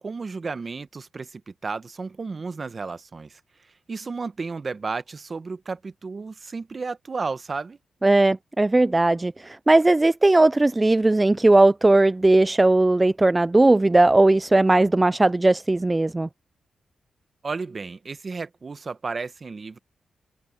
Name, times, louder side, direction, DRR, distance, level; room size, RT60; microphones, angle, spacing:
voice 1, 0.0-3.4 3.9-7.8 17.4-19.8, right 4 dB, 35° right, 1.0 m, -33 dB
voice 2, 8.0-16.3, right 2 dB, 15° right, 0.3 m, -18 dB
cardioid pair, 105°, 0 cm